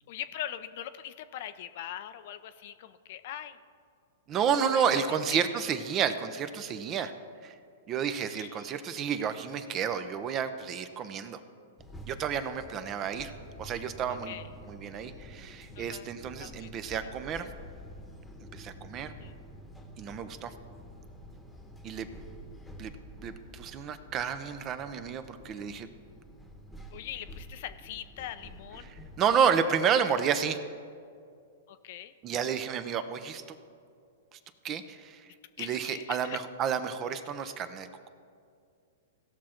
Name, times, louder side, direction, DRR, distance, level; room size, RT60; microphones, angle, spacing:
voice 1, 0.1-3.6 4.7-4.8 5.3-5.4 8.3-8.7 14.3-14.4 15.8-16.1 16.4-16.7 19.2-19.4 26.9-28.9 31.7-32.1 35.6-36.4 37.4-37.5, left 11 dB, 60° left, 12 dB, 0.5 m, -41 dB
voice 2, 4.3-7.1 7.4-7.5 7.9-11.4 12.1-13.3 13.6-14.4 14.7-17.5 18.5-19.1 20.0-20.5 21.8-22.1 22.8-22.9 23.2-25.9 28.8-30.6 32.2-33.6 34.3-34.4 34.6-35.2 35.6-38.1, right 7 dB, 30° right, 10 dB, 0.6 m, -30 dB
sound 1, 11.8-29.3, equal, 5° left, 1.2 m, -48 dB
17.0 x 6.2 x 4.4 m, 2.4 s
hypercardioid pair, 125°, 0 cm